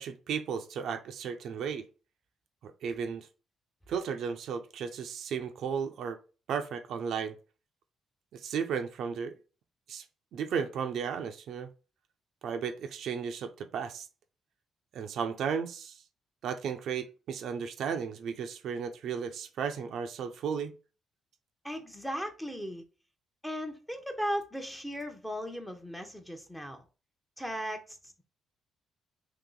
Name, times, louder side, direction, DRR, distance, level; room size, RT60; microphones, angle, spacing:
voice 1, 0.0-1.9 2.6-3.3 3.9-6.2 6.5-7.4 8.3-9.3 9.9-10.0 10.3-11.7 12.4-14.1 14.9-16.0 16.4-20.7, right 6 dB, 75° right, 0.6 m, -34 dB
voice 2, 21.6-22.8 23.4-26.8 27.4-28.0, equal, 5° left, 0.8 m, -37 dB
2.9 x 2.9 x 3.9 m
cardioid pair, 90°, 0 cm